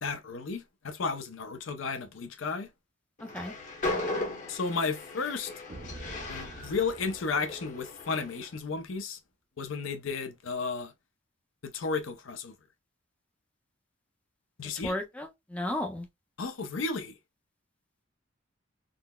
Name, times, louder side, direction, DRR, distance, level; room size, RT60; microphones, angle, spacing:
voice 1, 0.0-2.7 4.5-5.5 6.3-9.2 9.6-10.9 11.6-12.5 14.6-14.9 16.4-17.1, left 4 dB, 75° left, 0.6 m, -33 dB
Train, 3.2-8.5, left 2 dB, 40° left, 0.9 m, -37 dB
voice 2, 3.2-3.5 14.8-16.1, left 1 dB, 5° left, 0.6 m, -34 dB
sound 1, 5.7-8.3, right 2 dB, 40° right, 0.5 m, -47 dB
3.8 x 2.0 x 2.2 m
head